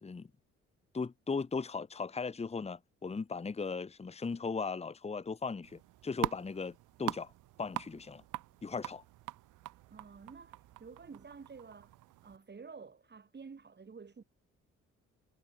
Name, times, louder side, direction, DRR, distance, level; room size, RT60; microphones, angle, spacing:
voice 1, 0.9-7.3 7.6-8.2 8.6-9.0, left 4 dB, 20° left, 1.1 m, -37 dB
sound 1, 5.6-12.4, right 17 dB, 90° right, 1.1 m, -43 dB
voice 2, 9.9-11.9 12.2-14.2, right 5 dB, 35° right, 7.7 m, -51 dB
cardioid pair, 90°, 30 cm